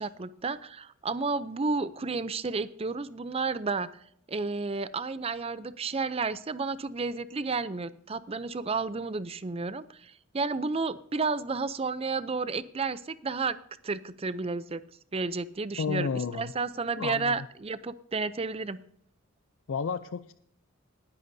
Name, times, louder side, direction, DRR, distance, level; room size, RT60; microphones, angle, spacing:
voice 1, 0.0-3.9 4.3-13.6 13.8-14.8 15.1-18.8, right 4 dB, 30° right, 15 dB, 0.5 m, -32 dB
voice 2, 15.8-16.5 17.0-17.5 19.7-20.3, left 5 dB, 70° left, 13 dB, 0.4 m, -31 dB
19.5 x 10.5 x 2.7 m, 0.70 s
head